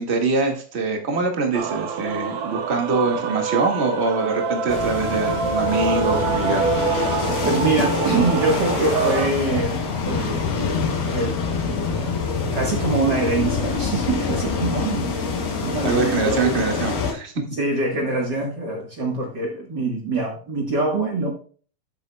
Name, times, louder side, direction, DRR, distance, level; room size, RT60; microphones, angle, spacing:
voice 1, 0.0-6.6 15.8-17.3, right 3 dB, 45° right, 3 dB, 0.8 m, -23 dB
Male singing / Female singing / Musical instrument, 1.5-9.3, right 5 dB, 65° right, 2.6 m, -25 dB
sound 1, 4.7-17.1, left 5 dB, 75° left, 4.5 m, -26 dB
voice 2, 7.4-9.8 10.1-10.7 11.0-11.4 11.7-12.1 12.5-16.9 17.5-21.3, right 2 dB, 90° right, 0 dB, 0.9 m, -24 dB
12.0 x 8.3 x 2.3 m, 0.42 s
omnidirectional pair, 4.5 m